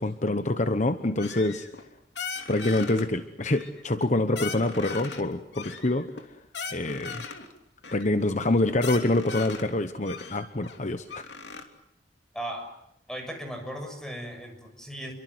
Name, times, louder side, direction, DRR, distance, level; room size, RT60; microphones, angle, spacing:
voice 1, 0.0-1.7 2.5-6.1 6.7-7.2 7.9-11.2, left 2 dB, 40° left, 9 dB, 1.2 m, -26 dB
sound 1, 1.2-1.9 2.1-3.1 3.5-4.1 4.3-5.2 5.5-7.5 7.8-8.1 8.4-8.5 8.7-9.7 10.0-11.6, left 5 dB, 65° left, 3.1 m, -38 dB
voice 2, 12.3-12.7 13.1-15.1, equal, 5° left, 4 dB, 6.7 m, -37 dB
29.5 x 24.0 x 8.0 m, 0.76 s
head